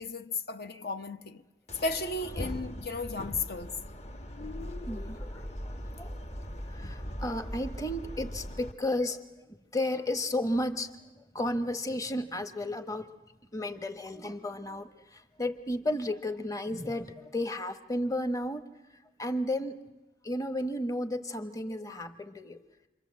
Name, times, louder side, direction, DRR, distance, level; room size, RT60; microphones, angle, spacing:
voice 1, 0.0-1.4 1.8-3.8, left 3 dB, 60° left, 0.9 m, -34 dB
sound 1, 1.7-8.7, equal, 35° left, 1.2 m, -40 dB
voice 2, 4.9-6.1 6.7-9.2 9.7-13.1 13.5-18.7 19.2-19.8 20.2-22.6, left 1 dB, 20° left, 1.1 m, -33 dB
29.0 x 24.5 x 7.5 m
head